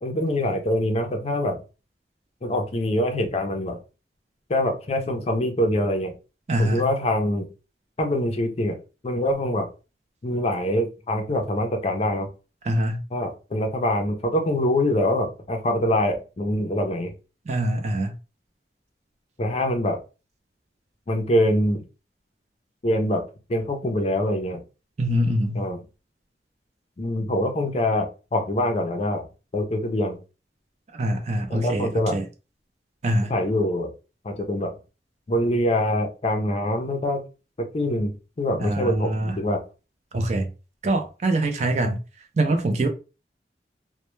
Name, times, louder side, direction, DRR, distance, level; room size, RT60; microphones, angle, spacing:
voice 1, 0.0-1.6 2.4-3.8 4.5-6.1 6.6-7.5 8.0-8.8 9.0-9.7 10.2-12.3 13.1-17.1 19.4-20.0 21.1-21.8 22.8-23.2 23.5-24.6 25.5-25.8 27.0-29.3 29.5-30.2 31.5-32.1 33.3-33.9 34.2-34.7 35.3-37.2 37.6-38.1 38.4-39.6, left 1 dB, 35° left, 0.4 m, -24 dB
voice 2, 6.5-6.9 12.6-13.0 17.5-18.1 25.0-25.6 30.9-32.3 33.0-33.3 38.6-39.4 40.1-40.5 40.8-42.0 42.4-42.9, right 1 dB, 40° right, 0.4 m, -24 dB
2.1 x 2.1 x 3.0 m
head